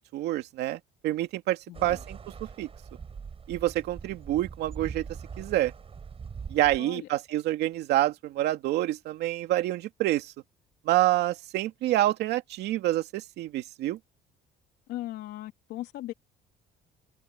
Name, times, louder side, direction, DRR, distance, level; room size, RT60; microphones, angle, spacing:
voice 1, 0.1-2.2 2.6-2.7 3.5-5.1 5.4-5.7 6.5-10.3 10.8-14.0, right 15 dB, 80° right, 2.5 m, -27 dB
voice 2, 1.7-2.0 6.8-7.1 14.9-16.1, left 15 dB, 80° left, 3.5 m, -38 dB
sound 1, 1.7-6.8, right 6 dB, 35° right, 5.7 m, -42 dB
cardioid pair, 110°, 17 cm